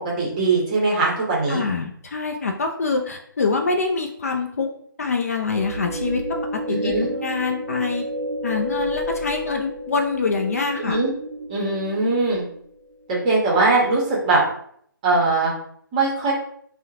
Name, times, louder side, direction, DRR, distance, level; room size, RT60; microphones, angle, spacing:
voice 1, 0.2-1.6 6.7-7.1 10.8-11.1 11.5-12.4 13.1-14.4 15.0-15.5 15.9-16.3, right 3 dB, 20° right, -4 dB, 0.8 m, -20 dB
voice 2, 1.5-4.7 5.0-6.2 6.7-8.0 8.4-11.0, left 4 dB, 40° left, 2 dB, 0.3 m, -25 dB
sound 1, 5.4-12.8, equal, 50° right, 0.5 m, -31 dB
3.5 x 2.1 x 2.8 m, 0.64 s
figure-of-eight pair, 150°, 12 cm